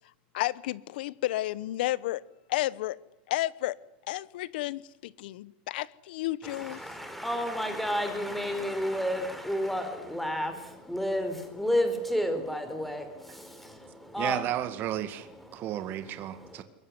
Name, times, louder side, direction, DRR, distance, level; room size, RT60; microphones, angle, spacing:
voice 1, 0.3-2.2 2.5-3.0 3.3-3.8 4.1-6.8, left 16 dB, 75° left, 1.0 m, -32 dB
voice 2, 6.4-14.4 15.5-16.6, equal, ahead, 4.4 m, -32 dB
voice 3, 14.2-16.6, right 12 dB, 40° right, 2.0 m, -33 dB
23.0 x 21.5 x 9.9 m
supercardioid pair, 140°, 5 cm